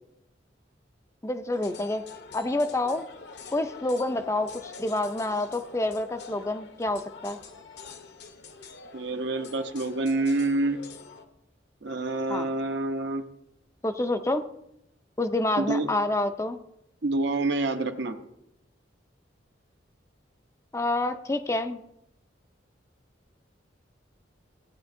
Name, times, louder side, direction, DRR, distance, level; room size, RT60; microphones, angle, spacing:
voice 1, 1.2-2.0 2.3-3.1 3.5-7.4 12.3-12.5 13.8-14.4 15.2-16.6 20.7-21.8, left 2 dB, 15° left, 8 dB, 0.4 m, -28 dB
sound 1, 1.5-11.2, left 4 dB, 65° left, 0.8 m, -45 dB
voice 2, 8.9-10.8 11.8-13.2 15.6-15.9 17.0-18.2, right 2 dB, 70° right, 7 dB, 0.8 m, -27 dB
15.5 x 8.9 x 2.6 m, 0.81 s
head